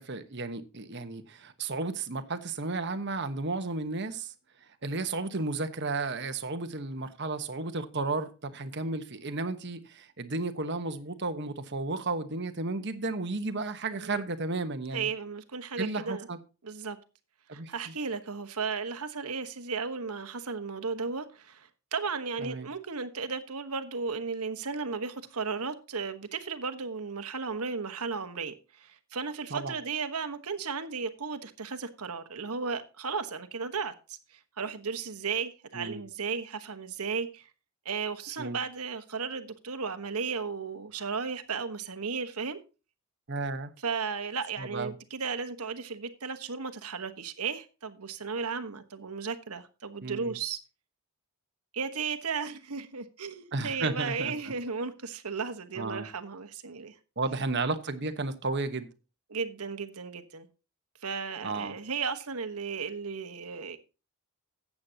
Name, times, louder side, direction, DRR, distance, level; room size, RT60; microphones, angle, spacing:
voice 1, 0.0-4.3 4.8-15.1 15.8-16.4 17.5-17.7 22.4-22.7 29.5-29.7 35.7-36.0 38.4-38.6 43.3-43.7 44.6-44.9 50.0-50.4 53.5-54.3 55.8-56.1 57.2-58.9 61.4-61.7, right 3 dB, 50° right, 1.2 m, -33 dB
voice 2, 14.9-16.3 16.6-17.0 17.5-37.5 37.8-42.6 43.8-50.6 51.7-56.9 59.3-60.5 61.0-63.8, right 5 dB, 85° right, 1.3 m, -35 dB
14.5 x 8.6 x 2.9 m
head